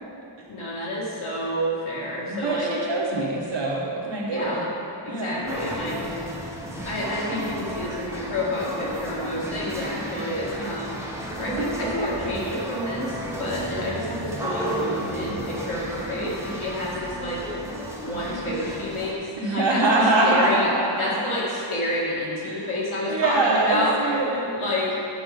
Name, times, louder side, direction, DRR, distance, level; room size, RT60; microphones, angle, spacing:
voice 1, 0.5-2.7 4.3-4.7 5.0-6.0 6.9-11.0 11.4-17.4 18.0-19.8 20.2-20.7 21.0-23.9 24.5-24.9, left 1 dB, 85° left, -6 dB, 2.1 m, -29 dB
voice 2, 2.3-4.6 5.1-5.6 11.6-12.7 18.3-18.4 19.4-21.3 22.5-22.7 23.0-24.5, right 2 dB, 65° right, -3 dB, 1.5 m, -24 dB
sound 1, 5.5-19.1, right 1 dB, 5° right, 1.1 m, -33 dB
9.5 x 6.4 x 3.9 m, 2.7 s
wide cardioid pair, 100°, 48 cm